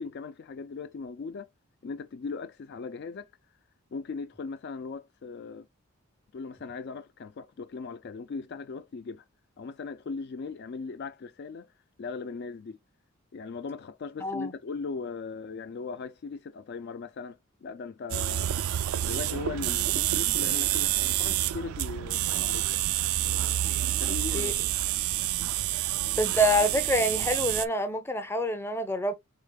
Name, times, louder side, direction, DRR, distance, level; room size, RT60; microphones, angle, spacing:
voice 1, 0.0-1.5 1.8-3.3 3.9-5.7 6.3-9.2 9.6-11.7 12.0-12.8 13.3-18.5 19.0-22.7 24.0-24.7, left 4 dB, 50° left, 0.3 m, -38 dB
voice 2, 14.2-14.5 24.1-24.5 26.2-29.1, equal, 10° left, 0.7 m, -27 dB
sound 1, 18.1-27.7, right 13 dB, 85° right, 0.4 m, -28 dB
4.9 x 3.6 x 2.3 m
head